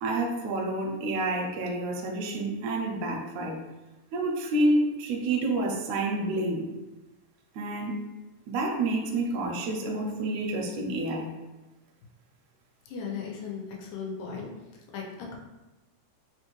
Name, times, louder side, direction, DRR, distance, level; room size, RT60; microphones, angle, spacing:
voice 1, 0.0-3.6 4.1-6.6 7.6-8.0 8.5-11.3, right 2 dB, 80° right, 1 dB, 1.8 m, -28 dB
voice 2, 12.9-14.5 14.9-15.4, left 6 dB, 90° left, -1 dB, 2.2 m, -36 dB
5.1 x 2.2 x 3.0 m, 1.1 s
omnidirectional pair, 3.6 m